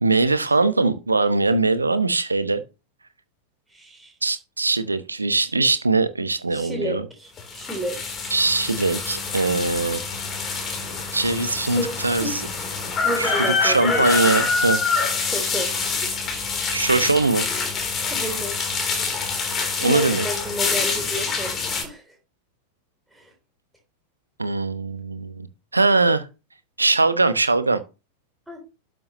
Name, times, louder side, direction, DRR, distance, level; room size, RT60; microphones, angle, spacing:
voice 1, 0.0-2.6 4.2-7.0 8.3-10.0 11.1-12.4 13.2-13.3 13.6-15.1 16.7-17.4 19.8-20.3 24.4-25.5 25.7-26.3 26.8-27.8, right 3 dB, 80° right, 1.0 m, -21 dB
voice 2, 3.7-4.1 6.5-8.3 11.6-12.4 13.0-14.4 15.3-16.3 16.6-16.7 18.1-18.6 19.8-22.1 23.1-23.3 28.5-28.6, equal, 5° right, 3.4 m, -32 dB
sound 1, 7.4-21.8, left 4 dB, 25° left, 3.7 m, -26 dB
12.5 x 7.8 x 3.1 m
figure-of-eight pair, 90°, 0 cm